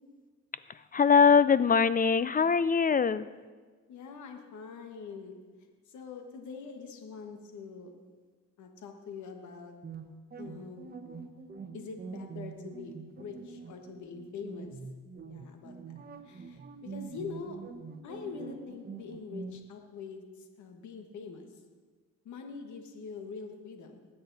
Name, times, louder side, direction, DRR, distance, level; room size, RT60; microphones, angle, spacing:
voice 1, 0.7-3.3, left 6 dB, 30° left, 16 dB, 0.4 m, -23 dB
voice 2, 3.9-5.4 5.9-7.9 8.6-9.8 10.4-10.9 11.7-12.9 13.2-14.8 15.2-16.0 16.2-17.6 18.0-21.5 22.2-24.1, left 5 dB, 70° left, 4 dB, 1.5 m, -44 dB
sound 1, 9.8-19.6, right 5 dB, 30° right, 1.2 m, -44 dB
19.5 x 8.7 x 4.1 m, 1.4 s
cardioid pair, 90°, 30 cm